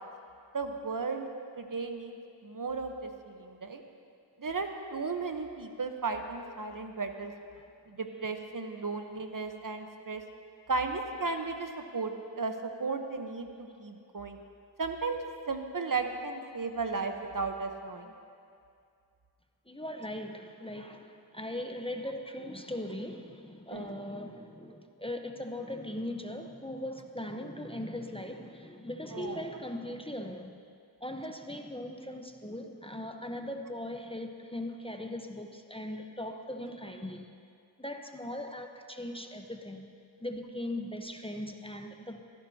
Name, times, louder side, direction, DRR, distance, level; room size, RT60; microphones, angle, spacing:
voice 1, 0.5-1.3 1.6-3.8 4.4-7.3 7.9-10.2 10.7-14.4 14.8-15.2 15.5-18.1 23.7-23.9 29.1-29.4, right 4 dB, 45° right, 5 dB, 1.1 m, -35 dB
voice 2, 19.7-30.6 31.0-37.3 37.8-39.9 40.2-42.2, left 1 dB, 10° left, 4 dB, 1.0 m, -39 dB
22.5 x 15.5 x 2.9 m, 2.4 s
cardioid pair, 60°, 46 cm